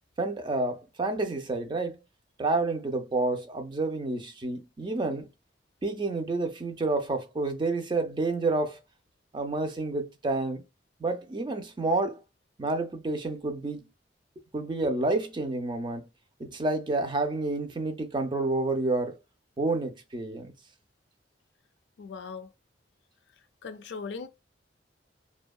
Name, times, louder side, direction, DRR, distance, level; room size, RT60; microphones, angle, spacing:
voice 1, 0.2-2.0 2.4-5.3 5.8-8.8 9.3-10.6 11.0-12.2 12.6-13.8 14.5-16.0 16.4-19.2 19.6-20.5, right 2 dB, 25° right, 0.4 m, -29 dB
voice 2, 22.0-22.5 23.6-24.3, left 5 dB, 70° left, 0.4 m, -38 dB
2.7 x 2.2 x 2.2 m
head